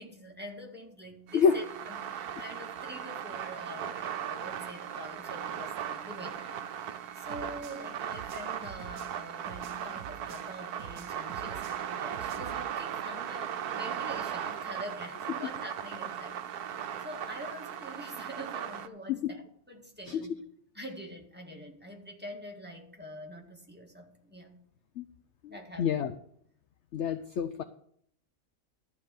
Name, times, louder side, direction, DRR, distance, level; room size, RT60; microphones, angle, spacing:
voice 1, 0.0-20.4 20.7-24.5 25.5-26.0, equal, 5° right, 1 dB, 1.7 m, -45 dB
sound 1, 1.3-18.9, right 9 dB, 85° right, 1.3 m, -38 dB
sound 2, 7.3-10.5 10.8-12.6, right 9 dB, 70° right, 1.1 m, -48 dB
voice 2, 20.1-20.4 25.0-25.1 25.4-26.1 26.9-27.6, left 6 dB, 60° left, 11 dB, 0.8 m, -28 dB
12.5 x 4.8 x 8.6 m, 0.66 s
omnidirectional pair, 1.6 m